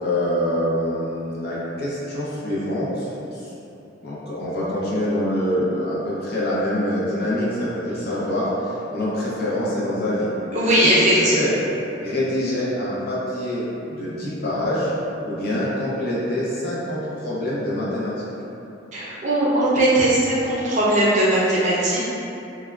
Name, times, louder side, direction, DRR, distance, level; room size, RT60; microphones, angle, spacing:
voice 1, 0.0-3.5 4.0-10.3 10.8-11.5 12.0-14.9 15.2-18.1, left 1 dB, 50° left, -8 dB, 0.6 m, -25 dB
voice 2, 10.5-11.4 18.9-22.0, right 1 dB, 40° right, -7 dB, 0.5 m, -19 dB
3.3 x 2.2 x 2.3 m, 2.9 s
head